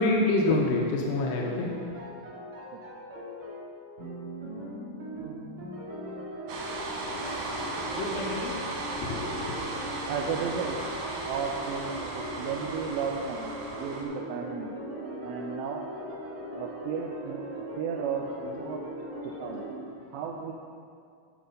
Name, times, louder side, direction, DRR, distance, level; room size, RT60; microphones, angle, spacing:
voice 1, 0.0-1.7 7.9-8.6 8.9-9.5, left 2 dB, 85° left, 0 dB, 2.0 m, -27 dB
sound 1, 1.1-19.7, equal, 50° right, 1.9 m, -39 dB
sound 2, 6.5-14.0, right 2 dB, 70° right, 2.1 m, -36 dB
voice 2, 10.1-10.8 11.2-14.7 15.2-15.9 16.5-17.4 17.8-18.9 19.4-19.6 20.1-20.5, right 7 dB, 90° right, 1 dB, 2.8 m, -34 dB
12.0 x 4.8 x 5.1 m, 2.3 s
omnidirectional pair, 5.0 m